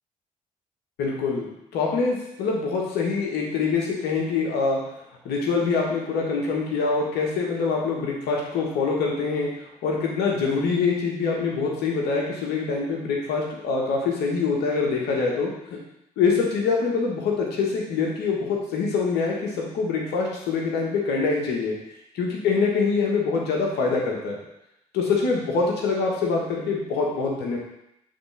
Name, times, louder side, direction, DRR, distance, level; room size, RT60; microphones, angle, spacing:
voice 1, 1.0-4.8 5.2-9.5 9.8-15.8 16.2-21.7 22.2-24.4 24.9-27.6, left 4 dB, 65° left, -1 dB, 1.6 m, -24 dB
6.0 x 3.9 x 5.7 m, 0.83 s
figure-of-eight pair, 40°, 18 cm